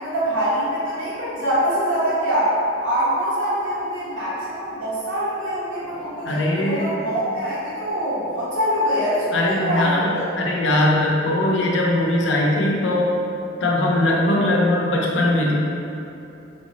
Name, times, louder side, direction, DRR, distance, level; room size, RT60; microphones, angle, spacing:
voice 1, 0.0-2.5 2.8-10.3, equal, 90° right, -9 dB, 1.1 m, -24 dB
voice 2, 6.2-6.9 9.3-13.2 13.6-15.5, left 1 dB, 75° left, -2 dB, 0.5 m, -20 dB
3.3 x 2.0 x 3.8 m, 2.8 s
head